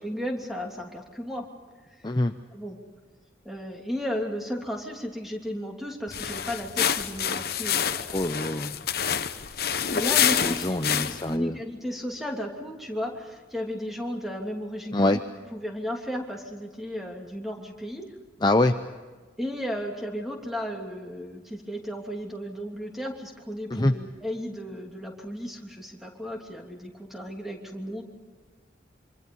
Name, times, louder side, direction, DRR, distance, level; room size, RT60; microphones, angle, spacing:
voice 1, 0.0-1.5 2.0-2.1 2.5-2.8 3.4-8.3 9.9-15.2 15.5-18.1 19.4-28.0, equal, ahead, 1 dB, 3.0 m, -34 dB
sound 1, 6.1-11.4, left 8 dB, 55° left, 1.0 m, -27 dB
voice 2, 8.1-8.8 10.4-11.6 14.9-15.2 18.4-18.8 23.7-24.0, left 1 dB, 25° left, 7 dB, 0.7 m, -24 dB
26.5 x 26.0 x 5.5 m, 1.4 s
head